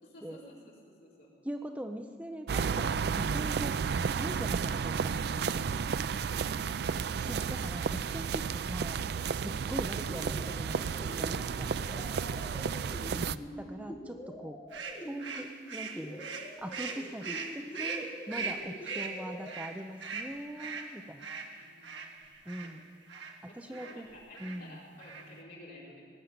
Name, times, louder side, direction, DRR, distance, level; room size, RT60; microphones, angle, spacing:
voice 1, 0.0-1.3 5.7-6.8 12.1-12.6 21.0-21.1 21.5-21.9 23.5-26.0, left 1 dB, 60° left, -5 dB, 4.9 m, -53 dB
voice 2, 1.4-5.5 7.2-9.1 9.3-10.8 11.2-11.7 13.1-14.6 15.1-16.2 16.6-21.3 22.5-22.8 23.5-24.1 24.4-24.8, right 1 dB, 10° right, 5 dB, 0.6 m, -42 dB
sound 1, 2.5-13.4, right 6 dB, 60° right, 0.4 m, -32 dB
sound 2, 10.0-19.5, equal, 20° left, 1.9 m, -46 dB
sound 3, 14.7-22.7 23.1-23.4 23.7-24.0 24.3-24.6 24.9-25.4, right 5 dB, 75° right, 1.6 m, -40 dB
18.5 x 8.2 x 8.7 m, 2.3 s
head